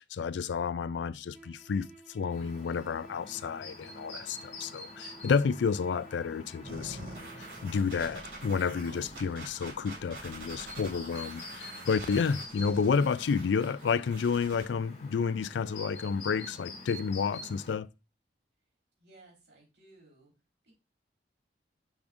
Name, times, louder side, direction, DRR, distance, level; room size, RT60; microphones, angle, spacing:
voice 1, 0.0-17.9, left 5 dB, 80° left, 0.4 m, -30 dB
sound 1, 1.3-7.7, right 3 dB, 5° right, 1.1 m, -55 dB
Chirp tweet, 2.3-17.8, left 2 dB, 40° left, 2.2 m, -47 dB
sound 2, 6.7-14.7, right 2 dB, 90° right, 3.3 m, -46 dB
voice 2, 19.0-20.3 20.6-20.8, right 2 dB, 75° right, 4.3 m, -58 dB
7.0 x 6.2 x 2.6 m
head